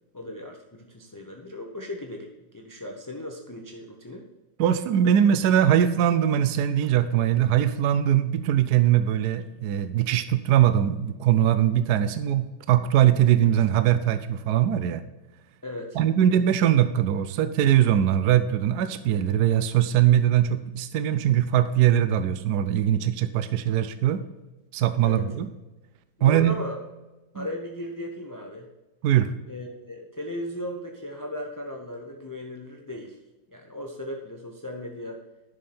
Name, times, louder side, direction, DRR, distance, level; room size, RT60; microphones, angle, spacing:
voice 1, 0.1-4.3 15.6-16.0 25.0-25.3 26.2-26.8 27.3-28.7 29.5-33.2 33.5-35.2, left 1 dB, 20° left, 1 dB, 0.5 m, -36 dB
voice 2, 4.6-15.0 16.0-24.2 24.7-25.5 26.2-26.5 27.4-27.5 29.0-29.3, right 10 dB, 70° right, 11 dB, 1.1 m, -21 dB
11.0 x 6.5 x 4.3 m, 1.1 s
omnidirectional pair, 2.0 m